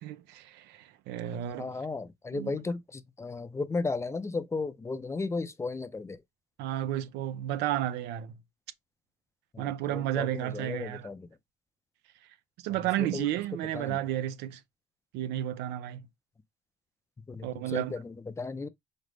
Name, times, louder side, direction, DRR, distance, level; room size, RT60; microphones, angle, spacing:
voice 1, 0.0-1.7 2.3-2.6 6.6-8.3 9.6-11.1 12.6-14.6 15.1-16.1 17.4-18.0, right 12 dB, 90° right, 0.5 m, -32 dB
voice 2, 1.3-6.2 9.5-11.3 13.0-13.3 13.7-14.0 17.3-18.7, left 3 dB, 15° left, 0.4 m, -35 dB
5.0 x 2.0 x 3.2 m
cardioid pair, 110°, 17 cm